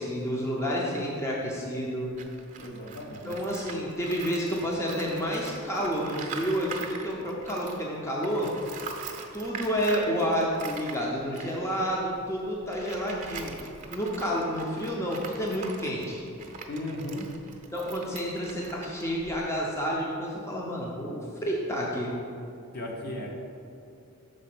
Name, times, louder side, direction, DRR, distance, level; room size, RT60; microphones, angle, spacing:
voice 1, 0.0-2.1 3.2-8.5 9.3-13.6 13.9-16.2 17.7-22.1, equal, 10° left, -3 dB, 0.7 m, -30 dB
Tools, 2.2-7.9 8.2-19.7, right 5 dB, 35° right, 0.7 m, -43 dB
voice 2, 2.6-3.4 16.7-17.2 22.7-23.3, left 1 dB, 45° left, -1 dB, 1.0 m, -36 dB
6.4 x 4.3 x 5.9 m, 2.6 s
head